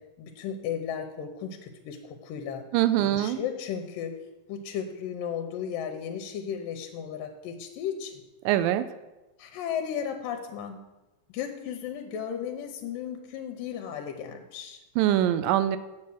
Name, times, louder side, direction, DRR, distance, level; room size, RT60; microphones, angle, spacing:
voice 1, 0.2-2.6 3.0-4.2 4.5-8.2 9.4-10.8 11.3-14.8, left 8 dB, 90° left, 5 dB, 2.4 m, -35 dB
voice 2, 2.7-3.4 8.5-8.9 15.0-15.8, right 12 dB, 85° right, 12 dB, 2.2 m, -23 dB
8.5 x 7.3 x 6.2 m, 1.1 s
omnidirectional pair, 3.9 m